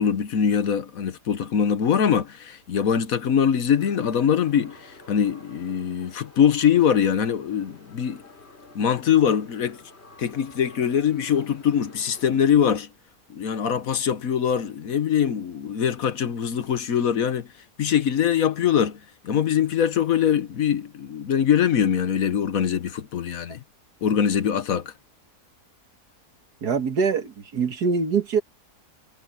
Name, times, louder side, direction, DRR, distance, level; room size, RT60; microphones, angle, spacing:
voice 1, 0.0-4.8 5.1-8.2 8.7-9.8 10.2-12.9 13.3-17.5 17.8-19.0 19.2-23.6 24.0-24.9, left 8 dB, 60° left, 1.4 m, -22 dB
sound 1, 3.8-12.4, left 2 dB, 40° left, 4.0 m, -50 dB
voice 2, 26.6-28.4, right 5 dB, 85° right, 2.2 m, -24 dB
omnidirectional pair, 1.7 m